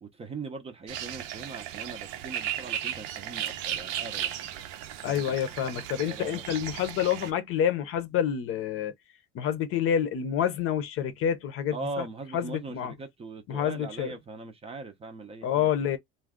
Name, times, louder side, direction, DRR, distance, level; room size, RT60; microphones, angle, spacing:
voice 1, 0.0-4.3 5.1-5.4 6.0-6.4 11.7-16.0, right 3 dB, 20° right, 0.5 m, -40 dB
sound 1, 0.9-7.3, right 11 dB, 70° right, 0.7 m, -35 dB
voice 2, 5.0-8.9 9.3-12.0 12.3-12.9 13.5-14.1 15.4-16.0, left 9 dB, 45° left, 0.7 m, -28 dB
2.5 x 2.2 x 3.5 m
supercardioid pair, 125°, 30 cm